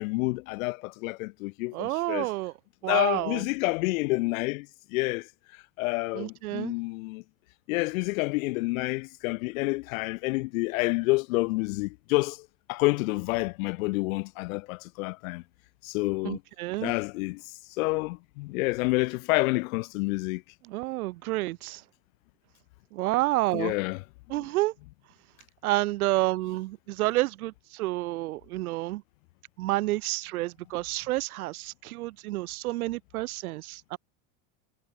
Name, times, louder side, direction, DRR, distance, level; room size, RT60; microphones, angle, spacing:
voice 1, 0.0-2.3 2.9-4.7 4.9-5.3 5.8-7.2 7.7-12.4 12.7-15.4 15.8-16.4 16.8-17.4 17.8-20.4 23.5-24.0, left 24 dB, 70° left, 0.8 m, -28 dB
voice 2, 1.7-2.5 2.8-3.5 6.1-6.7 16.2-16.9 20.6-21.8 22.9-23.7 24.3-24.7 25.6-29.0 29.6-34.0, right 18 dB, 80° right, 2.0 m, -29 dB
supercardioid pair, 140°, 43 cm